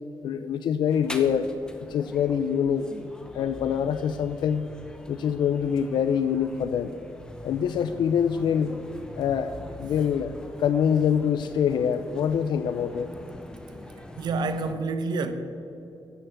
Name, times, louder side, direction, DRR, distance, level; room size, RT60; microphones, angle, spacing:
voice 1, 0.2-1.5 1.9-2.9 3.3-4.7 5.1-7.0 7.4-8.8 9.2-10.3 10.6-13.1, left 8 dB, 75° left, 11 dB, 0.4 m, -25 dB
sound 1, 0.9-14.7, left 1 dB, 10° left, 0.8 m, -43 dB
voice 2, 14.2-15.3, right 3 dB, 65° right, 9 dB, 0.8 m, -28 dB
9.8 x 6.8 x 7.7 m, 2.8 s
wide cardioid pair, 145°, 8 cm